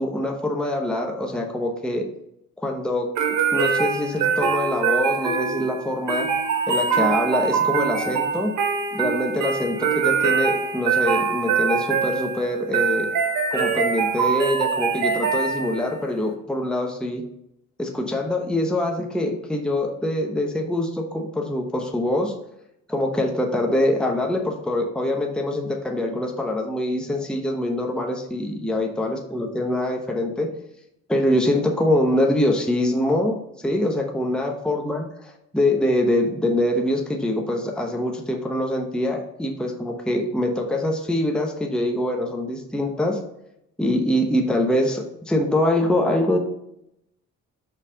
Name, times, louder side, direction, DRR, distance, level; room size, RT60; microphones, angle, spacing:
voice 1, 0.0-2.0 2.6-3.1 3.5-6.3 6.7-8.5 8.9-13.1 13.5-17.2 17.8-22.3 22.9-30.5 31.1-43.2 43.8-46.4, left 1 dB, 5° left, 2 dB, 0.9 m, -24 dB
sound 1, 3.2-16.0, right 6 dB, 80° right, 1.5 m, -23 dB
5.6 x 4.1 x 5.0 m, 0.80 s
cardioid pair, 90°, 30 cm